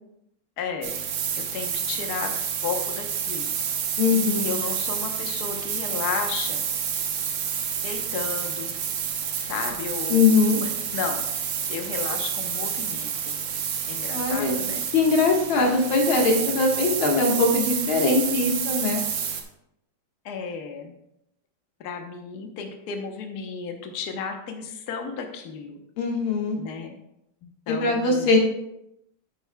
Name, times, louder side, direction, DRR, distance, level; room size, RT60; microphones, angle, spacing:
voice 1, 0.6-1.0 1.4-3.5 4.1-6.6 7.8-8.8 9.4-10.3 10.6-13.3 13.9-14.8 20.2-20.9 21.8-25.8 26.5-26.9 27.4-28.4, left 6 dB, 60° left, 4 dB, 1.3 m, -33 dB
sound 1, 0.8-19.4, right 7 dB, 75° right, 1.6 m, -29 dB
voice 2, 4.0-4.5 10.1-10.6 14.1-14.6 14.9-19.0 26.0-26.6 27.7-28.4, left 3 dB, 90° left, 1 dB, 2.2 m, -21 dB
9.5 x 9.1 x 2.2 m, 0.82 s
omnidirectional pair, 2.2 m